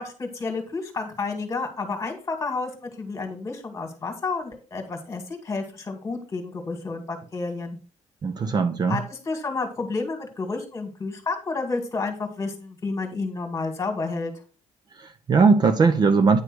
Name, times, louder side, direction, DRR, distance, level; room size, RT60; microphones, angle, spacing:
voice 1, 0.0-7.8 8.9-14.3, left 3 dB, 25° left, 2.0 m, -30 dB
voice 2, 8.2-9.0 15.0-16.4, right 4 dB, 35° right, 0.6 m, -19 dB
9.6 x 3.3 x 6.1 m
cardioid pair, 135°, 12 cm